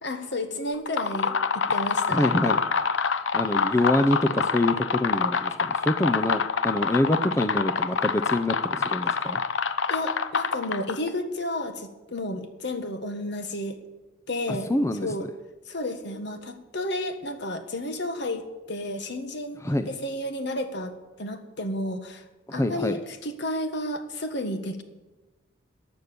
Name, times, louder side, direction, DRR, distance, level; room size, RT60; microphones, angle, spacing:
voice 1, 0.0-2.2 9.9-13.8 14.3-14.7 15.0-15.2 15.7-22.2 22.5-24.8, left 1 dB, 65° left, 8 dB, 1.5 m, -32 dB
sound 1, 0.7-11.1, left 5 dB, 85° left, 0.8 m, -26 dB
voice 2, 2.1-2.6 3.3-9.4 14.5-15.1 19.6-19.9 22.5-23.0, left 1 dB, 15° left, 9 dB, 0.6 m, -25 dB
15.0 x 10.0 x 6.9 m, 1.1 s
head